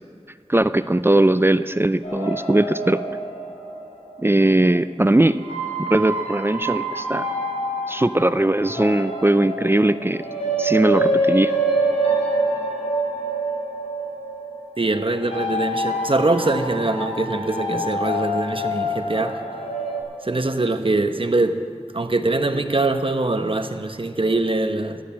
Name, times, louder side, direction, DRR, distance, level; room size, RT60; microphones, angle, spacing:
voice 1, 0.5-3.0 4.2-5.4 5.9-7.2 7.9-10.2 10.6-11.5, right 1 dB, 20° right, 13 dB, 0.4 m, -19 dB
sound 1, 2.0-4.6 5.3-20.0, right 1 dB, 75° left, 5.2 m, -26 dB
voice 2, 14.8-19.4 20.2-21.6 21.9-25.0, right 2 dB, 50° right, 7 dB, 0.9 m, -23 dB
14.5 x 11.5 x 7.3 m, 2.2 s
wide cardioid pair, 50°, 11 cm